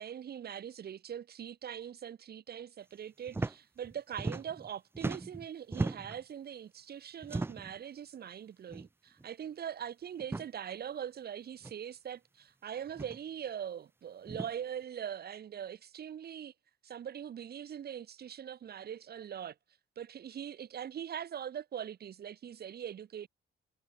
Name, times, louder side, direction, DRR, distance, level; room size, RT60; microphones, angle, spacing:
voice 1, 0.0-16.5 16.8-19.5 20.0-23.3, right 9 dB, 55° right, 1.1 m, -42 dB
sound 1, 3.3-3.6 3.8-4.7 4.9-6.2 7.2-7.8 8.7-8.9 9.2-9.3 10.2-10.5 11.6-11.7 12.9-13.2 14.3-14.5, right 3 dB, 10° right, 0.4 m, -37 dB
cardioid pair, 90°, 20 cm